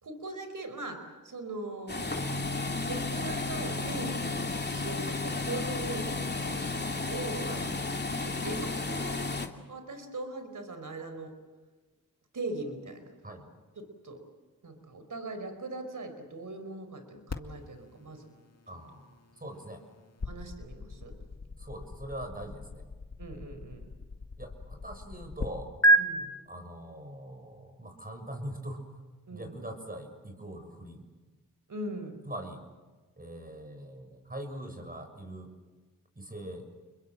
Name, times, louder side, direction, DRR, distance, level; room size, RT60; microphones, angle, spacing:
voice 1, 0.0-2.2 2.8-7.6 8.2-9.3 9.7-11.3 12.3-13.0 13.7-14.2 14.6-18.3 20.2-21.2 23.2-23.8 26.0-26.3 29.3-29.6 31.7-32.2, right 2 dB, 65° right, 8 dB, 4.9 m, -40 dB
sound 1, 1.9-9.5, left 3 dB, 30° left, 2.7 m, -33 dB
sound 2, 17.3-25.5 25.8-26.0, right 1 dB, 50° left, 2.2 m, -32 dB
voice 2, 18.7-19.8 21.6-22.8 24.4-25.7 26.5-28.9 29.3-31.0 32.2-32.6 33.2-35.5 36.2-36.7, right 1 dB, 25° right, 6 dB, 6.9 m, -42 dB
30.0 x 22.5 x 7.7 m, 1.3 s
cardioid pair, 45°, 34 cm